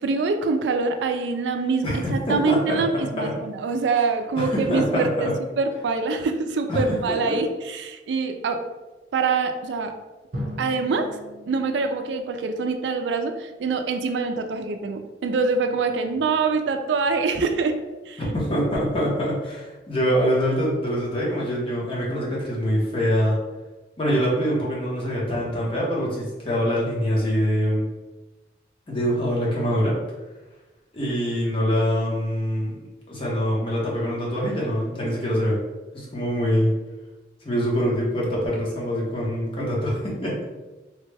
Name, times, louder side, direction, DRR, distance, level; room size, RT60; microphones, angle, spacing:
voice 1, 0.0-5.3 5.6-8.6 9.1-9.9 10.6-11.1 11.5-17.8 18.1-18.2, right 4 dB, 80° right, 6 dB, 0.3 m, -24 dB
voice 2, 1.8-3.3 4.3-5.3 6.7-6.8 7.1-7.4 18.2-23.4 24.0-27.9 28.9-30.0 30.9-32.8 33.1-35.6 35.9-36.7 37.4-40.4, equal, 30° left, -5 dB, 0.9 m, -24 dB
Drum, 10.3-13.0, left 1 dB, 50° right, 0.9 m, -37 dB
3.1 x 2.2 x 3.3 m, 1.2 s
head